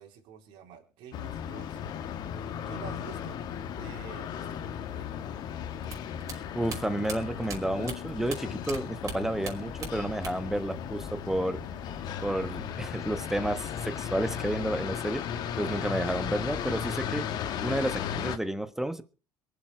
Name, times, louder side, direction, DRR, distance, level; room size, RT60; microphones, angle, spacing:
voice 1, 0.0-1.8 2.7-3.4 3.7-5.2, right 8 dB, 65° right, 4.1 m, -48 dB
sound 1, 1.1-18.4, left 8 dB, 50° left, 1.5 m, -36 dB
sound 2, 5.8-8.8 9.0-10.6 10.8-11.6, right 5 dB, 40° right, 5.4 m, -40 dB
voice 2, 6.3-11.6 12.2-15.3 15.6-19.0, right 1 dB, 5° right, 1.3 m, -31 dB
23.0 x 7.8 x 5.1 m
supercardioid pair, 120°, 9 cm